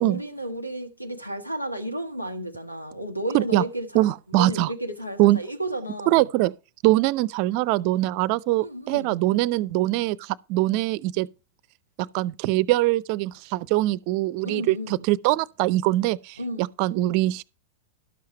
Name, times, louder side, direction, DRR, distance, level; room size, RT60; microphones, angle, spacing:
voice 1, 0.0-6.2 8.6-9.2 14.4-15.1 16.4-16.7, right 1 dB, 90° left, 1.3 m, -33 dB
voice 2, 3.9-4.7 5.2-5.4 6.1-6.5 6.8-11.3 12.0-17.4, right 17 dB, 45° right, 0.5 m, -23 dB
12.5 x 7.3 x 4.3 m
figure-of-eight pair, 90°, 0 cm